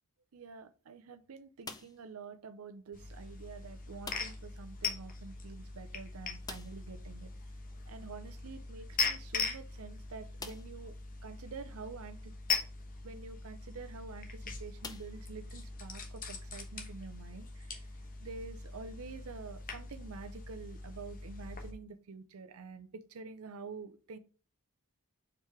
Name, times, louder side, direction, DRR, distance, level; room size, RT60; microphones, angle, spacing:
voice 1, 0.3-7.3 7.9-10.9 11.2-12.3 13.0-17.8 18.2-24.2, right 4 dB, 70° right, 10 dB, 0.5 m, -48 dB
sound 1, 1.6-2.2 4.0-4.6 4.8-4.9 5.2-5.3 6.4-7.0 8.7-8.8 9.5-9.6 10.4-10.9 11.6-11.7 13.7-13.9 14.8-15.7, left 4 dB, 15° left, 0.5 m, -47 dB
sound 2, 2.9-21.7, left 4 dB, 40° left, 1.1 m, -41 dB
4.9 x 4.6 x 4.6 m, 0.39 s
head